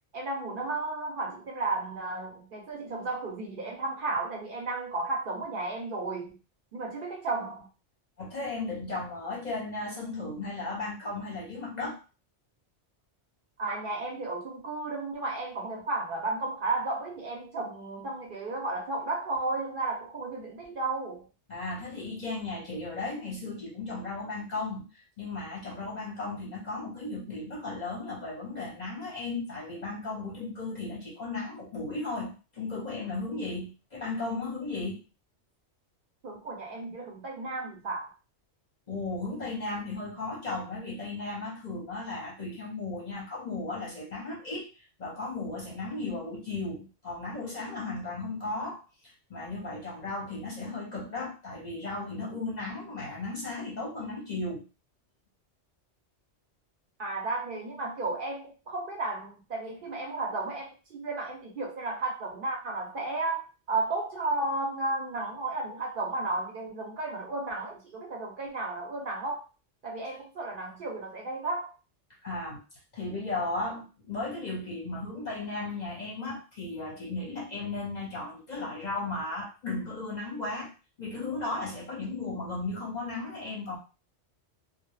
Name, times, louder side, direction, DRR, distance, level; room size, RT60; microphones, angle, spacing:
voice 1, 0.1-6.3 6.7-7.7 13.6-21.3 36.2-38.1 57.0-63.4 63.7-69.4 69.8-71.7, right 2 dB, 55° right, -1 dB, 0.7 m, -33 dB
voice 2, 8.2-12.0 21.5-35.0 38.9-44.7 45.0-48.8 49.3-54.6 72.2-72.6 72.9-80.7 81.0-83.8, left 3 dB, 45° left, -4 dB, 0.7 m, -35 dB
2.1 x 2.0 x 3.0 m, 0.31 s
omnidirectional pair, 1.2 m